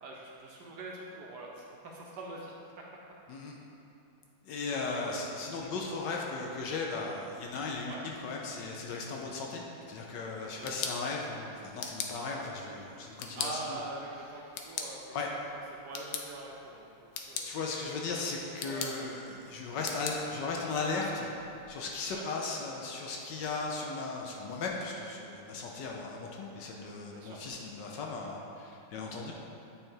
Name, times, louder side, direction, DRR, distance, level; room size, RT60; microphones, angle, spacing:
voice 1, 0.0-2.8 4.9-5.1 5.6-5.8 7.9-8.0 10.6-10.9 13.3-15.1 15.7-17.9 18.6-19.0 22.1-22.3 27.1-27.4, right 2 dB, 70° right, -2 dB, 1.1 m, -44 dB
voice 2, 4.4-9.6 9.9-13.8 15.1-15.3 17.5-21.3 21.7-29.3, left 3 dB, 70° left, -1 dB, 1.2 m, -37 dB
sound 1, 10.4-22.1, left 6 dB, 90° left, 0.8 m, -43 dB
9.1 x 3.4 x 4.4 m, 2.8 s
omnidirectional pair, 2.2 m